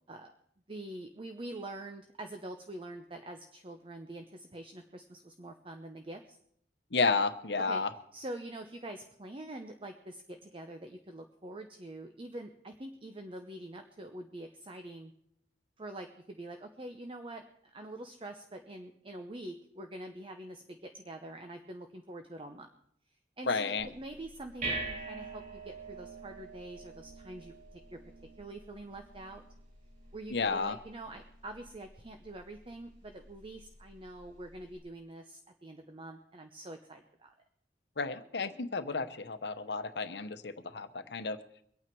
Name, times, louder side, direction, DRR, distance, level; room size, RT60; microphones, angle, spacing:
voice 1, 0.7-6.4 7.6-7.8 8.1-15.1 15.8-17.4 17.7-22.7 23.4-28.0 28.4-29.4 30.1-37.3, right 1 dB, 30° right, 5 dB, 0.8 m, -45 dB
voice 2, 6.9-7.9 23.5-23.9 30.3-30.8 38.0-41.4, left 4 dB, 70° left, 11 dB, 0.9 m, -32 dB
sound 1, 23.8-34.8, right 3 dB, 50° right, 5.5 m, -45 dB
23.5 x 8.9 x 4.6 m, 0.70 s
head